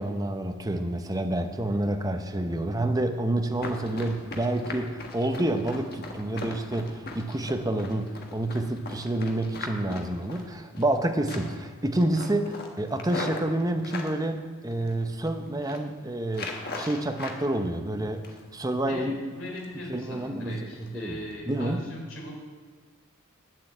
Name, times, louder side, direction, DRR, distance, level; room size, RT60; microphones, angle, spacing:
voice 1, 0.0-18.3 18.5-19.2 19.9-21.2 21.5-21.8, right 1 dB, 15° right, 6 dB, 0.8 m, -28 dB
Run, 3.5-11.0 11.3-11.7 12.0-14.1 14.7-15.3 15.5-15.8 16.3-17.4 17.7-18.6 18.9-19.1 19.5-19.8 20.1-20.3 20.7-20.9 21.3-21.4, left 2 dB, 45° left, 1.5 m, -39 dB
voice 2, 18.9-22.3, left 1 dB, 60° left, -1 dB, 3.6 m, -39 dB
9.5 x 7.6 x 7.9 m, 1.5 s
head